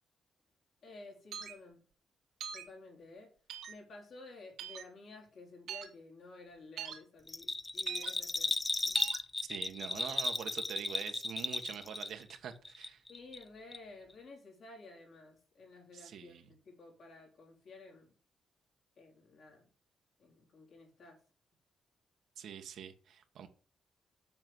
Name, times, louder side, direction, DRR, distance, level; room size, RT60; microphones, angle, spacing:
voice 1, 0.8-1.8 2.5-3.3 3.7-8.6 8.9-9.2 13.1-18.1 19.0-19.7 20.2-21.2, left 3 dB, 50° left, 0 dB, 3.8 m, -53 dB
sound 1, 1.3-1.5 2.4-2.7 3.5-3.7 4.6-4.8 5.7-5.9 6.8-7.0 7.9-8.1 8.9-9.2, right 8 dB, 85° right, 2.1 m, -41 dB
Bell, 7.3-12.4 12.6-13.4 13.7-13.8, left 3 dB, 15° left, 0.4 m, -35 dB
voice 2, 9.5-13.0 15.9-16.5 22.4-23.5, right 8 dB, 65° right, 6 dB, 1.3 m, -44 dB
7.7 x 6.2 x 7.7 m, 0.41 s
cardioid pair, 155°, 0 cm